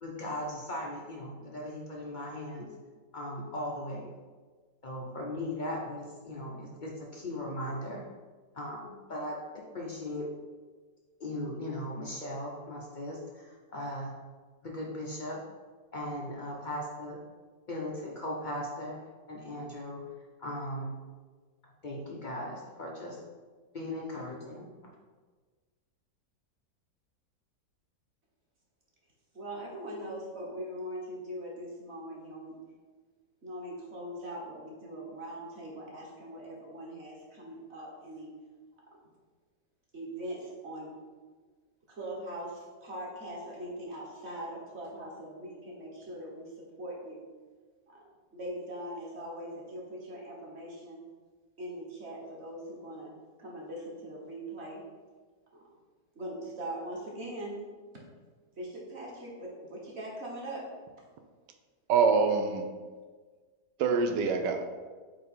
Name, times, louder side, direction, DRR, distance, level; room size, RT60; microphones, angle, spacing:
voice 1, 0.0-2.7 3.1-4.1 4.8-8.0 8.5-10.3 11.2-14.1 14.6-15.4 15.9-17.2 17.7-19.0 19.3-20.0 20.4-20.9 21.8-23.2 23.7-24.7, left 1 dB, 65° left, -2 dB, 0.4 m, -38 dB
voice 2, 29.3-32.6 33.4-38.3 39.9-40.9 41.9-46.5 46.8-47.2 48.3-51.0 51.6-53.1 53.4-54.8 55.5-55.6 56.1-57.6 58.6-60.7, right 1 dB, 40° right, -3 dB, 1.4 m, -41 dB
voice 3, 61.9-62.7 63.8-64.6, right 5 dB, 80° right, 6 dB, 1.3 m, -25 dB
8.1 x 2.7 x 4.3 m, 1.4 s
omnidirectional pair, 1.9 m